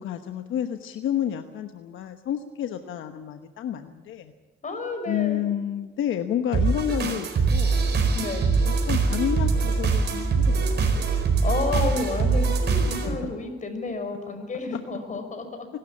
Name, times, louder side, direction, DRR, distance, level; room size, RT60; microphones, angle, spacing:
voice 1, 0.0-4.3 5.1-7.8 8.6-11.2 12.7-13.3 14.7-14.8, left 10 dB, 80° left, 7 dB, 1.2 m, -30 dB
voice 2, 4.6-5.4 8.1-8.4 11.4-15.7, left 3 dB, 40° left, 6 dB, 5.6 m, -30 dB
sound 1, 6.5-13.1, right 4 dB, 60° right, 4.4 m, -23 dB
24.5 x 13.0 x 8.6 m, 1.3 s
cardioid pair, 90°, 20 cm